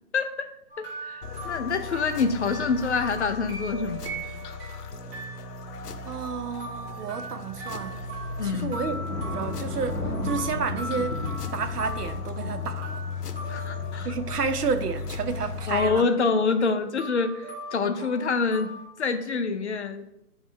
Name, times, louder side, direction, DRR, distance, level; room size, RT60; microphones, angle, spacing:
voice 1, 0.1-0.5 0.8-4.5 8.4-8.8 13.5-14.1 15.7-18.7 19.0-20.1, left 4 dB, 50° left, 0.5 m, -26 dB
sound 1, 0.7-14.5 17.0-18.8, right 1 dB, 40° right, 2.4 m, -40 dB
sound 2, 1.2-16.0, left 5 dB, 85° left, 0.8 m, -36 dB
voice 2, 6.1-8.1 8.4-11.2 11.5-13.0 14.0-16.1, right 5 dB, 85° right, 0.8 m, -31 dB
Thunder / Rain, 7.5-15.6, equal, 10° right, 0.5 m, -38 dB
8.8 x 3.1 x 3.6 m
hypercardioid pair, 160°, 46 cm